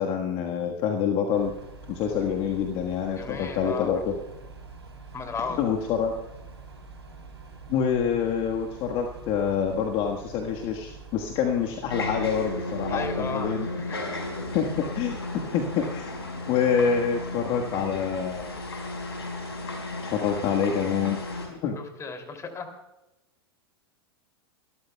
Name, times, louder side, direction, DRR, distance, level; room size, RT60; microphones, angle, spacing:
voice 1, 0.0-1.5 1.9-4.1 5.5-6.1 7.7-13.7 14.5-14.7 14.9-15.2 15.5-16.1 16.5-18.5 20.0-21.2 21.4-21.8, left 7 dB, 40° left, 2 dB, 1.5 m, -26 dB
sound 1, 1.3-15.4 15.7-16.0 16.6-16.8 17.8-17.9 18.3-19.1 19.5-19.6, right 4 dB, 90° right, 3.4 m, -46 dB
voice 2, 3.2-4.0 5.1-5.6 12.9-13.5 13.9-14.0 21.8-22.7, left 5 dB, 20° left, 5 dB, 2.8 m, -34 dB
sound 2, 11.9-21.5, left 2 dB, 80° left, 5.0 m, -34 dB
24.5 x 13.5 x 2.3 m, 0.97 s
figure-of-eight pair, 95°, 13 cm